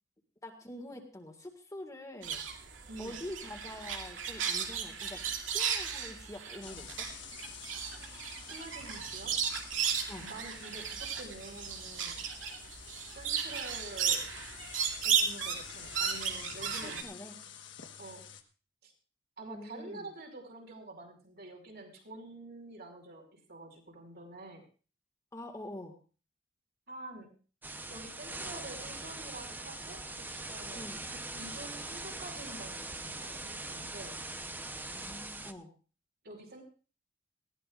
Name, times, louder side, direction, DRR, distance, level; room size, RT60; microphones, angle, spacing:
voice 1, 0.4-2.4 3.0-5.2 5.5-7.1 10.1-10.3 16.8-17.4 19.5-20.1 25.3-26.0 30.7-31.0 34.9-35.7, left 1 dB, 20° left, 2 dB, 2.0 m, -45 dB
sound 1, 2.2-17.0, right 7 dB, 90° right, 2.4 m, -35 dB
voice 2, 2.9-3.2 8.5-9.4 10.2-12.2 13.1-14.3 15.0-17.0 18.0-18.2 18.8-18.9 19.4-24.6 26.9-27.3 27.9-34.2 36.2-36.6, right 2 dB, 60° right, 0 dB, 5.6 m, -47 dB
sound 2, 6.6-18.4, left 9 dB, 70° left, 1.4 m, -49 dB
sound 3, 27.6-35.5, right 2 dB, 10° right, 0.8 m, -42 dB
20.0 x 15.5 x 2.5 m, 0.38 s
head